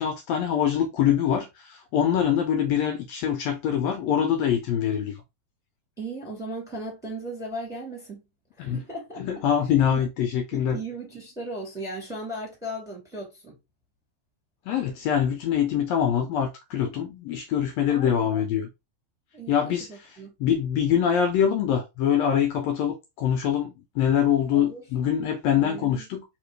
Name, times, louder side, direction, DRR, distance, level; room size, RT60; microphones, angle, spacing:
voice 1, 0.0-5.2 8.6-8.8 9.2-10.8 14.7-18.7 19.5-26.2, left 9 dB, 80° left, 1.6 m, -24 dB
voice 2, 6.0-8.2 8.6-9.4 9.9-10.1 10.5-13.5 17.9-18.4 19.3-20.3 24.5-24.8 25.6-26.0, right 1 dB, ahead, 1.5 m, -37 dB
4.4 x 2.9 x 3.2 m
omnidirectional pair, 3.4 m